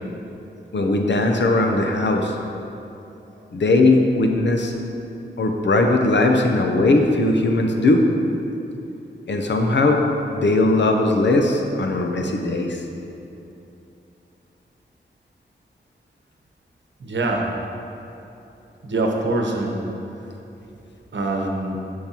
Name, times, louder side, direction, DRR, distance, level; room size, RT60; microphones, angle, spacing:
voice 1, 0.7-2.4 3.5-4.7 5.4-8.1 9.3-10.0 10.3-12.8, left 2 dB, 70° left, 3 dB, 0.8 m, -19 dB
voice 2, 17.0-17.5 18.8-19.8 21.1-21.8, right 2 dB, 75° right, 0 dB, 1.0 m, -24 dB
10.5 x 6.5 x 2.9 m, 2.8 s
wide cardioid pair, 125°, 19 cm